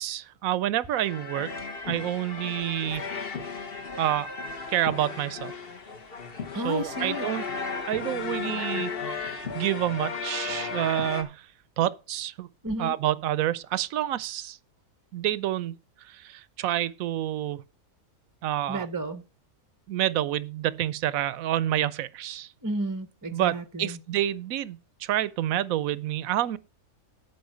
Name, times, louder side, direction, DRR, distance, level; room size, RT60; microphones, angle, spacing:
voice 1, 0.0-1.5 1.9-3.0 4.0-4.3 4.7-5.5 6.5-7.4 7.9-11.5 11.8-12.5 12.8-14.6 15.1-17.6 18.4-18.9 19.9-22.5 23.3-26.6, right 12 dB, 75° right, 1.1 m, -28 dB
sound 1, 0.9-11.2, left 5 dB, 45° left, 1.5 m, -35 dB
voice 2, 6.5-7.3 12.6-12.9 18.7-19.2 22.6-24.0, right 1 dB, 20° right, 0.6 m, -32 dB
8.7 x 5.9 x 7.5 m
omnidirectional pair, 1.5 m